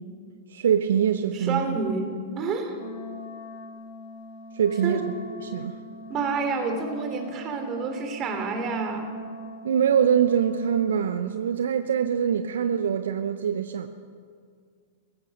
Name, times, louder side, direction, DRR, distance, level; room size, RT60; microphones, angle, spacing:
voice 1, 0.5-1.8 4.5-5.0 5.4-5.7 9.6-13.9, right 8 dB, 70° right, 9 dB, 0.6 m, -24 dB
voice 2, 1.3-2.8 4.8-5.0 6.1-9.1, right 4 dB, 35° right, 5 dB, 2.9 m, -29 dB
Wind instrument woodwind instrument, 2.7-11.1, equal, 70° left, 2.0 m, -42 dB
16.0 x 16.0 x 5.3 m, 2.1 s
hypercardioid pair, 105°, 0 cm